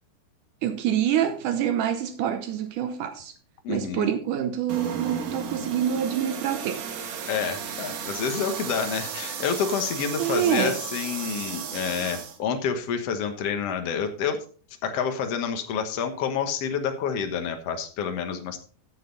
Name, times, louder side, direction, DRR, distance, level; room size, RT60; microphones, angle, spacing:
voice 1, 0.6-3.3 3.7-6.8 10.2-10.8, right 9 dB, 90° right, 1.8 m, -26 dB
voice 2, 3.6-4.1 7.3-14.4 14.8-18.6, left 7 dB, 70° left, 1.5 m, -28 dB
sound 1, 4.7-12.4, right 7 dB, 60° right, 2.0 m, -34 dB
14.0 x 7.6 x 4.0 m
omnidirectional pair, 4.7 m